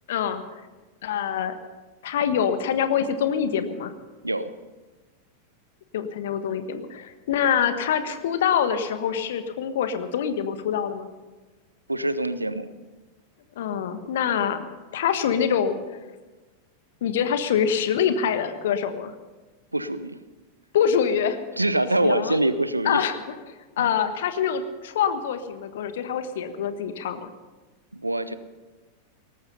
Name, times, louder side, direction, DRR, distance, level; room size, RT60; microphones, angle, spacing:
voice 1, 0.1-0.4 1.0-1.6 2.0-3.9 5.9-11.1 13.6-14.7 14.9-15.8 17.0-19.1 20.7-21.4 22.0-22.4 22.8-23.2 23.8-27.3, left 8 dB, 55° left, 10 dB, 1.3 m, -25 dB
voice 2, 11.9-12.7 19.7-20.2 21.6-23.0 23.8-23.9 27.9-28.3, right 1 dB, 85° right, 14 dB, 0.8 m, -25 dB
18.5 x 14.0 x 5.5 m, 1.2 s
figure-of-eight pair, 90°, 0 cm